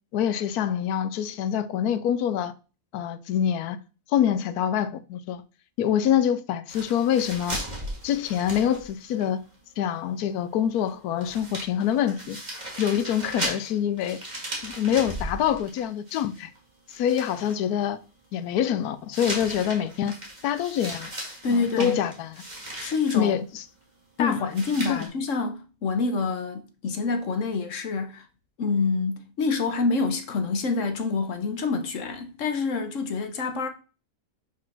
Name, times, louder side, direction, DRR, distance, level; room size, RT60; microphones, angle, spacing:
voice 1, 0.1-2.5 2.9-3.8 4.1-5.4 5.8-7.6 8.0-9.4 9.8-12.4 12.8-14.2 14.6-16.5 16.9-18.0 18.3-20.2 20.4-21.1 21.8-22.3 23.1-23.6 24.2-24.4 24.9-25.0, left 9 dB, 90° left, 1.1 m, -25 dB
sound 1, 6.7-9.3 9.5-9.6 10.9-11.0 11.2-16.6 16.9-17.6 19.1-23.2 24.5-25.1, right 1 dB, 25° right, 2.3 m, -37 dB
voice 2, 21.4-22.0 22.8-23.4 24.2-28.3 28.6-33.7, left 4 dB, 60° left, 1.2 m, -27 dB
6.0 x 4.5 x 5.9 m
omnidirectional pair, 1.6 m